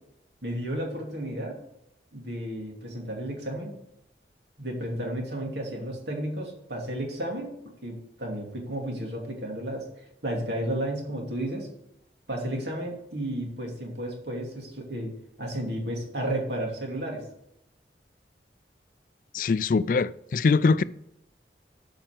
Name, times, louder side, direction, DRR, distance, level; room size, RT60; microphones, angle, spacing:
voice 1, 0.4-1.5 2.1-3.7 4.6-9.9 10.2-11.7 12.3-15.1 15.4-17.2, right 1 dB, 75° right, 2.7 m, -32 dB
voice 2, 19.3-20.8, left 4 dB, 50° left, 0.3 m, -23 dB
8.8 x 5.8 x 7.6 m
head